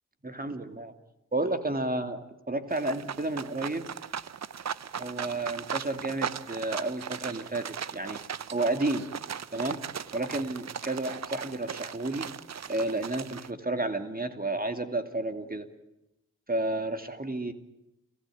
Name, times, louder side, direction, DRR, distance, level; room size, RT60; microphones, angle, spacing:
voice 1, 0.2-0.9 1.3-2.2 2.5-3.9 5.0-8.2 8.5-9.1 9.5-9.8 10.1-12.3 12.7-15.7 16.5-17.5, right 2 dB, 25° right, 7 dB, 2.7 m, -31 dB
sound 1, 2.7-13.5, right 8 dB, 55° right, 0.9 m, -38 dB
29.5 x 16.5 x 9.3 m, 0.90 s
supercardioid pair, 45°, 32 cm